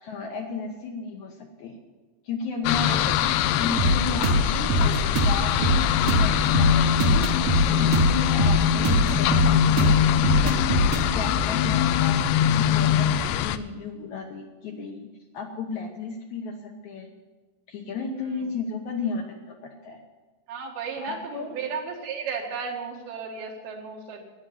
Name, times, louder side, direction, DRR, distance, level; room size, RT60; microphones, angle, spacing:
voice 1, 0.0-1.8 2.2-3.1 3.6-15.1 15.3-17.1 17.7-20.0 21.0-21.6, left 4 dB, 65° left, 2 dB, 2.1 m, -34 dB
sound 1, 2.7-13.6, left 10 dB, 80° left, 2.1 m, -22 dB
voice 2, 2.7-3.5 3.8-4.3 18.3-18.4 20.5-24.2, right 5 dB, 80° right, 1 dB, 3.7 m, -35 dB
sound 2, 3.8-13.4, right 1 dB, 60° right, 1.8 m, -24 dB
12.0 x 9.7 x 8.0 m, 1.3 s
omnidirectional pair, 4.4 m